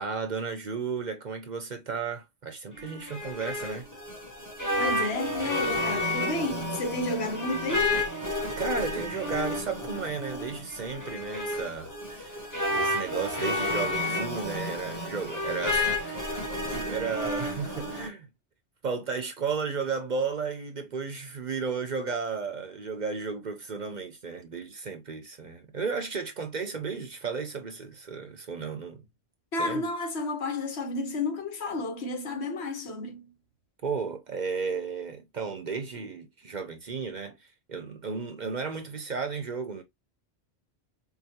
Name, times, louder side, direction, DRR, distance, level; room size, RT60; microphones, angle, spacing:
voice 1, 0.0-3.9 8.6-16.3 16.6-18.3 18.8-29.1 29.6-29.9 33.8-39.8, right 5 dB, 50° right, 0.7 m, -34 dB
sound 1, 2.8-18.1, left 1 dB, 20° left, 0.9 m, -31 dB
voice 2, 4.8-7.9 29.5-33.2, left 2 dB, 75° left, 1.2 m, -31 dB
4.8 x 2.3 x 2.8 m
omnidirectional pair, 1.1 m